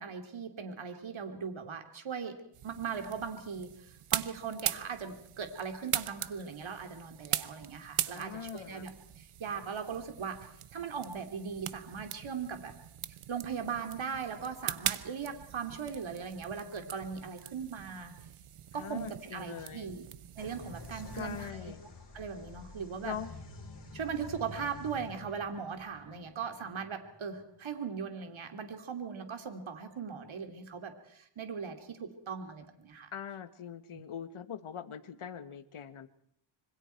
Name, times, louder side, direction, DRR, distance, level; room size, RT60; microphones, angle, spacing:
voice 1, 0.0-2.3 2.6-10.4 10.7-12.7 13.3-18.1 18.7-20.1 20.4-21.7 22.1-23.2 23.9-33.1, right 6 dB, 70° right, 6 dB, 3.0 m, -39 dB
sound 1, 2.5-21.5, right 10 dB, 85° right, 1.1 m, -41 dB
voice 2, 8.0-8.9 18.7-20.0 20.9-21.9 23.0-23.3 33.1-36.1, left 8 dB, 75° left, 12 dB, 1.7 m, -42 dB
sound 2, 20.4-27.9, left 2 dB, 55° left, 8.0 m, -49 dB
26.5 x 25.0 x 4.6 m, 0.70 s
cardioid pair, 75°, 50 cm